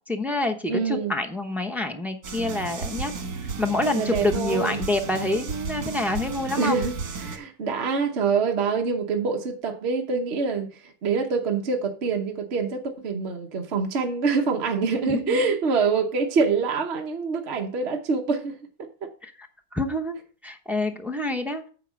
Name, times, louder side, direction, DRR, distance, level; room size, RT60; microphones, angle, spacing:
voice 1, 0.1-3.1 3.6-6.8 15.0-15.6 19.2-19.5 19.7-20.1 20.4-21.6, left 2 dB, ahead, 0.4 m, -27 dB
voice 2, 0.7-1.1 4.0-4.8 6.6-18.6 19.0-19.1, right 5 dB, 50° right, 1.1 m, -25 dB
sound 1, 2.2-7.4, right 4 dB, 85° right, 1.9 m, -33 dB
9.1 x 4.6 x 6.3 m
omnidirectional pair, 1.6 m